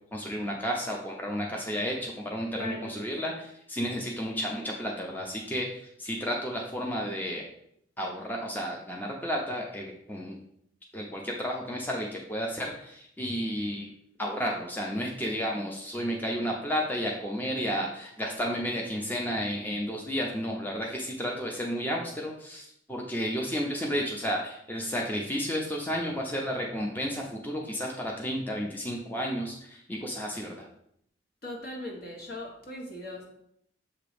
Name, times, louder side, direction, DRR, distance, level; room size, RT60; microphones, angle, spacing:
voice 1, 0.1-7.4 8.0-10.4 10.9-13.9 14.2-30.7, equal, 10° left, -1 dB, 0.6 m, -32 dB
voice 2, 2.5-3.0 31.4-33.2, left 1 dB, 55° left, -1 dB, 1.5 m, -39 dB
6.8 x 2.9 x 5.0 m, 0.72 s
head